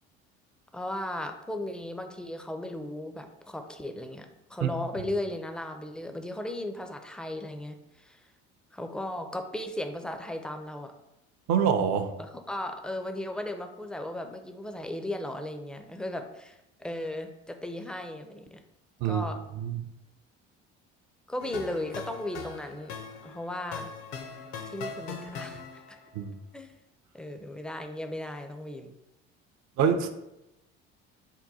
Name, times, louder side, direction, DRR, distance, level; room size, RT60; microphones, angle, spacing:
voice 1, 0.7-8.2 8.7-10.9 12.2-18.6 19.0-19.4 21.3-22.9 23.2-23.9 24.7-25.6 25.9-26.0 26.5-26.7 27.1-28.9, left 1 dB, 5° left, 5 dB, 0.4 m, -36 dB
voice 2, 11.5-12.1 19.0-19.2 19.6-19.8 26.2-26.3 29.8-30.1, right 7 dB, 60° right, 7 dB, 0.5 m, -25 dB
sound 1, 21.4-26.1, left 5 dB, 65° left, 0.6 m, -40 dB
3.7 x 2.2 x 4.0 m, 0.90 s
hypercardioid pair, 65°, 32 cm